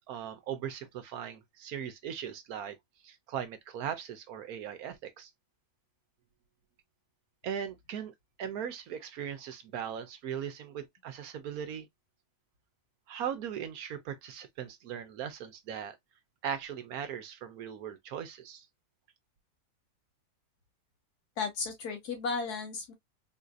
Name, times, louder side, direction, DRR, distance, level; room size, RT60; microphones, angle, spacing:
voice 1, 0.1-2.8 3.0-5.3 7.4-11.9 13.1-16.0 16.4-18.6, right 8 dB, 70° right, 1.1 m, -39 dB
voice 2, 21.4-22.9, left 4 dB, 75° left, 1.7 m, -34 dB
3.8 x 2.7 x 2.3 m
omnidirectional pair, 1.7 m